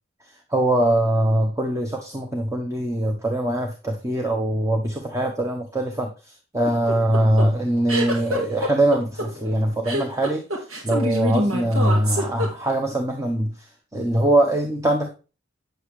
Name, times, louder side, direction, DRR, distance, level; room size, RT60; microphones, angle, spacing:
voice 1, 0.3-15.1, right 1 dB, 15° right, 2 dB, 1.1 m, -22 dB
sound 1, 6.7-12.9, left 1 dB, 85° right, 3.5 m, -25 dB
9.2 x 8.0 x 3.2 m, 0.32 s
head